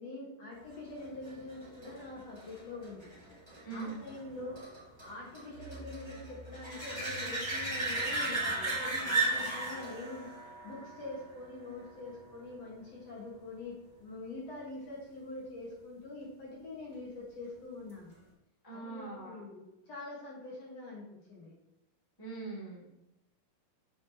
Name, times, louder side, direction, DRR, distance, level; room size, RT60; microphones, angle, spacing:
voice 1, 0.0-3.1 3.7-4.6 5.0-10.3 10.6-18.1 18.7-21.5, left 2 dB, 55° left, -4 dB, 2.1 m, -44 dB
sound 1, 1.0-12.3 17.9-18.0, right 3 dB, 30° right, 0.4 m, -36 dB
voice 2, 3.6-4.0 18.6-19.4 22.2-22.8, right 4 dB, 10° left, -5 dB, 1.0 m, -42 dB
8.6 x 6.6 x 2.9 m, 0.90 s
omnidirectional pair, 4.4 m